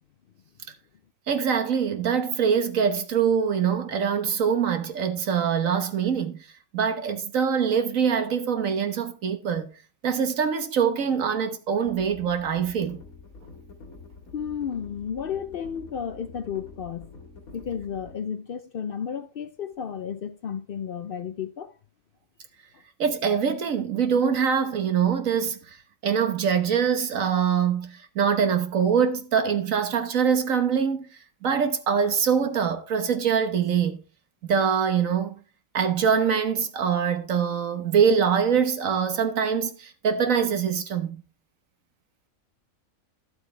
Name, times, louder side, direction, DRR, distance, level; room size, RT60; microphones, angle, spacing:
voice 1, 1.3-6.4 6.7-9.7 10.0-13.0 23.0-25.6 26.0-31.1 31.4-34.0 34.4-35.3 35.7-41.2, right 7 dB, 70° right, 1.5 m, -24 dB
sound 1, 11.8-18.2, left 3 dB, 85° left, 2.4 m, -47 dB
voice 2, 14.3-17.1 17.5-21.7, left 7 dB, 60° left, 0.6 m, -33 dB
12.5 x 8.0 x 3.3 m
omnidirectional pair, 1.5 m